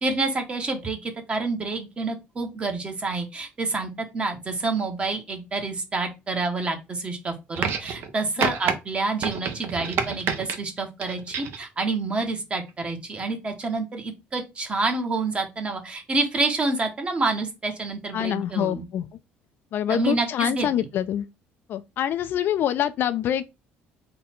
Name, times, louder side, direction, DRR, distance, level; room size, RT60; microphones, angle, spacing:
voice 1, 0.0-18.8 19.9-20.7, right 3 dB, 25° right, 1.0 m, -28 dB
sound 1, 7.6-8.1 8.4-8.8 9.2-10.6 11.0-11.6 12.7-12.8, right 7 dB, 60° right, 0.7 m, -28 dB
voice 2, 18.1-19.1 19.7-21.3 21.7-23.4, left 10 dB, 55° left, 0.3 m, -25 dB
3.9 x 2.2 x 4.2 m
cardioid pair, 110°, 4 cm